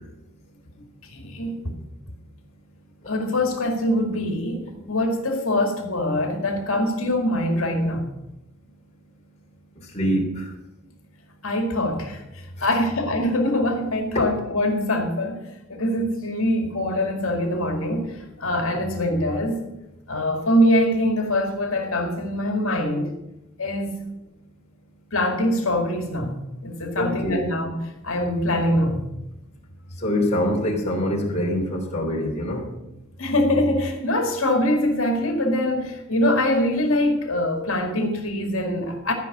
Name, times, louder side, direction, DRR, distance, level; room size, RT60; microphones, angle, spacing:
voice 1, 1.0-1.7 3.1-8.1 11.4-19.6 20.1-23.1 23.6-24.0 25.1-26.3 26.6-27.8 28.0-29.0 33.2-39.1, left 1 dB, 70° left, 2.1 m, -23 dB
voice 2, 9.9-10.5 12.6-12.7 14.1-14.2 27.0-27.4 30.0-32.6, left 1 dB, 30° left, 3.2 m, -24 dB
14.0 x 5.7 x 8.4 m
head